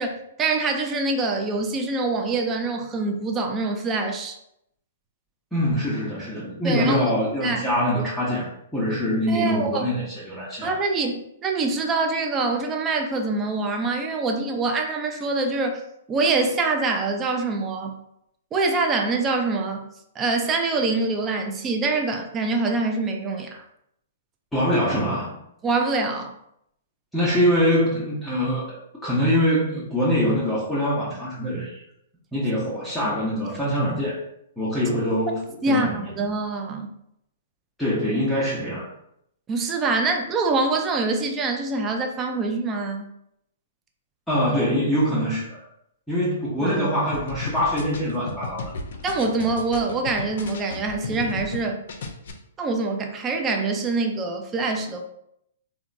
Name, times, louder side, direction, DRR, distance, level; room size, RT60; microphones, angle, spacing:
voice 1, 0.0-4.4 6.6-7.0 7.4-7.6 9.3-9.8 10.6-15.8 16.1-18.0 18.5-19.8 20.2-23.6 25.6-26.3 33.1-33.2 35.6-36.9 39.5-43.0 46.6-46.8 49.0-51.8 52.6-55.0, right 3 dB, 20° right, 4 dB, 0.3 m, -25 dB
voice 2, 5.5-8.5 8.7-10.8 24.5-25.4 27.1-31.8 32.3-34.2 34.6-35.4 35.7-36.0 37.8-38.9 44.3-45.6 46.1-48.7, equal, 5° left, -10 dB, 0.7 m, -24 dB
sound 1, 47.1-51.6 51.9-52.3, left 4 dB, 65° left, 0.5 m, -34 dB
2.8 x 2.1 x 2.5 m, 0.76 s
hypercardioid pair, 135°, 0 cm